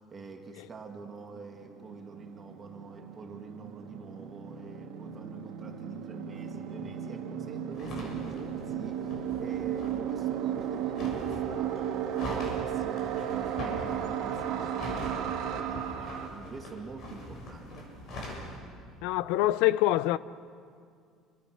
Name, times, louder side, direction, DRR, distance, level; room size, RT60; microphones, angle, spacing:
voice 1, 0.0-17.9, right 4 dB, 20° right, 2.0 m, -46 dB
sound 1, 0.8-0.9 1.0-16.3, right 9 dB, 60° right, 2.3 m, -35 dB
sound 2, 7.7-18.6, left 1 dB, 40° left, 7.0 m, -42 dB
voice 2, 19.0-20.2, left 15 dB, 75° left, 0.6 m, -25 dB
29.0 x 24.5 x 6.5 m
cardioid pair, 175°, 0 cm